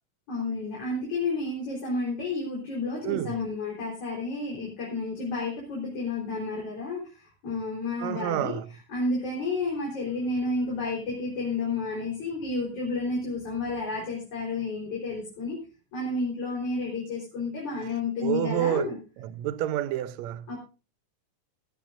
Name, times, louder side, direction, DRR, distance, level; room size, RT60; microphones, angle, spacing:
voice 1, 0.3-15.6 15.9-19.0 20.5-20.6, left 3 dB, 45° left, 5.0 m, -31 dB
voice 2, 3.1-3.4 8.0-8.7 18.2-18.9 19.2-20.5, right 12 dB, 70° right, 1.9 m, -28 dB
18.0 x 13.0 x 2.6 m
omnidirectional pair, 3.7 m